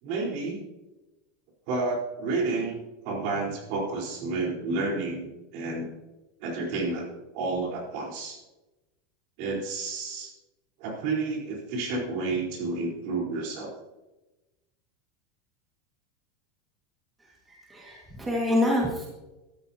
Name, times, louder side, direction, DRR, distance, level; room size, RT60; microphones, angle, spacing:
voice 1, 0.0-0.6 1.7-2.8 3.0-5.3 5.5-5.9 6.4-7.1 7.3-8.4 9.4-10.3 10.8-13.7, right 3 dB, 55° right, -1 dB, 4.0 m, -30 dB
voice 2, 17.5-19.1, left 1 dB, 10° right, -3 dB, 1.8 m, -26 dB
13.5 x 13.0 x 2.8 m, 1.0 s
supercardioid pair, 160°, 0 cm